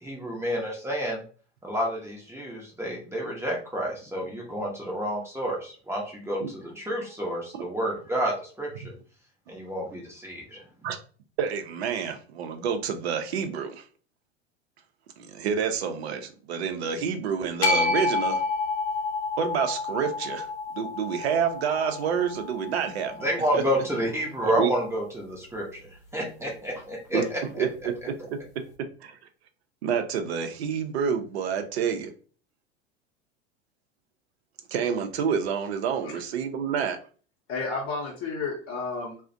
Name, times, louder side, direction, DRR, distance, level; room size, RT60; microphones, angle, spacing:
voice 1, 0.0-1.2 1.6-8.9 9.5-10.6 23.2-25.9 26.1-27.6, equal, 10° right, -2 dB, 0.6 m, -30 dB
voice 2, 11.4-13.8 15.2-18.4 19.4-20.5 20.7-23.3 23.5-23.6 24.4-24.7 27.1-27.2 27.6-28.4 29.0-29.2 29.8-32.1 34.7-37.0, right 7 dB, 70° right, 7 dB, 0.5 m, -28 dB
sound 1, 17.6-23.8, left 4 dB, 85° left, 0.6 m, -30 dB
voice 3, 37.5-39.2, left 4 dB, 45° left, -2 dB, 0.7 m, -31 dB
2.4 x 2.1 x 2.5 m, 0.41 s
figure-of-eight pair, 80°, 33 cm